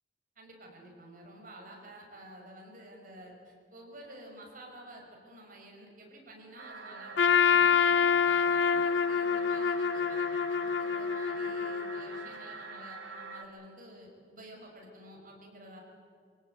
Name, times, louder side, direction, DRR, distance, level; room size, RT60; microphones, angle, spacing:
voice 1, 0.4-15.8, right 1 dB, 50° right, 0 dB, 6.2 m, -51 dB
sound 1, 6.6-13.5, right 3 dB, 75° right, 2.2 m, -45 dB
Trumpet, 7.2-12.2, left 6 dB, 70° left, 0.6 m, -26 dB
25.0 x 17.5 x 9.2 m, 2.3 s
head